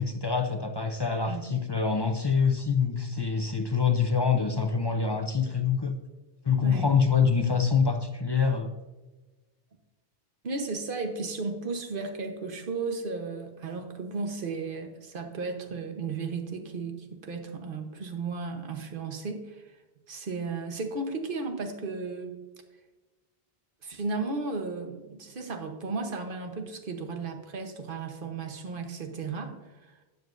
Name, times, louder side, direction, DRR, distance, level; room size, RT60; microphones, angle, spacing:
voice 1, 0.0-6.0 6.4-8.7, left 6 dB, 30° left, 6 dB, 0.5 m, -25 dB
voice 2, 10.4-19.8 20.1-22.3 23.8-29.9, right 4 dB, 55° right, 5 dB, 1.2 m, -34 dB
12.0 x 7.9 x 2.6 m, 1.2 s
omnidirectional pair, 1.1 m